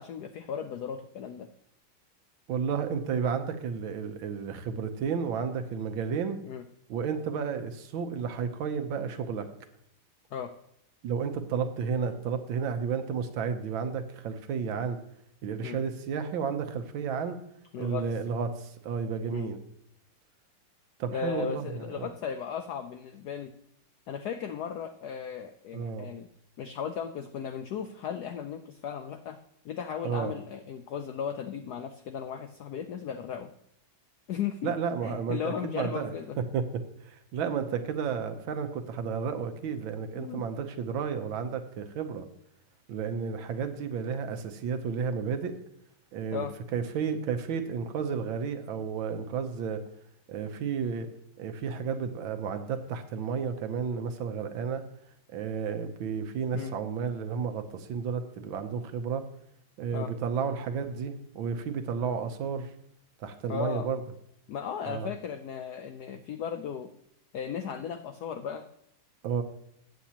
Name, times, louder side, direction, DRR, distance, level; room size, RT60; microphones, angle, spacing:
voice 1, 0.0-1.5 6.4-6.6 10.3-10.5 15.6-15.8 17.7-18.1 19.3-19.5 21.1-23.5 24.1-26.3 26.6-29.4 29.6-33.5 34.3-34.7 35.0-36.4 40.2-40.5 46.3-46.5 56.5-56.7 59.9-60.1 63.5-63.9 64.5-66.9 67.3-68.7, left 8 dB, 80° left, 8 dB, 0.8 m, -36 dB
voice 2, 2.5-6.4 6.9-9.5 11.0-15.0 15.4-17.4 17.8-19.6 21.0-22.1 25.7-26.1 30.0-30.3 34.6-36.1 36.4-42.3 42.9-45.5 46.1-46.5 46.7-49.8 50.3-51.1 51.4-54.8 55.3-59.2 59.8-62.7 63.2-64.0 64.8-65.1 69.2-69.4, right 6 dB, 70° right, 8 dB, 1.6 m, -32 dB
14.5 x 8.4 x 2.9 m, 0.76 s
omnidirectional pair, 2.3 m